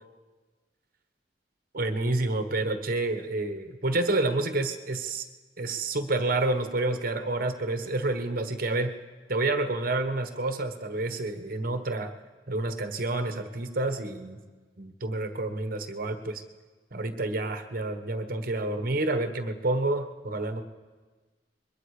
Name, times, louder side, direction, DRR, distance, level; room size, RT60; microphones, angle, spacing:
voice 1, 1.7-5.2 5.6-8.9 9.3-12.1 12.5-14.4 14.8-16.4 16.9-20.6, right 2 dB, 55° right, 8 dB, 1.3 m, -29 dB
24.0 x 22.0 x 5.0 m, 1.4 s
head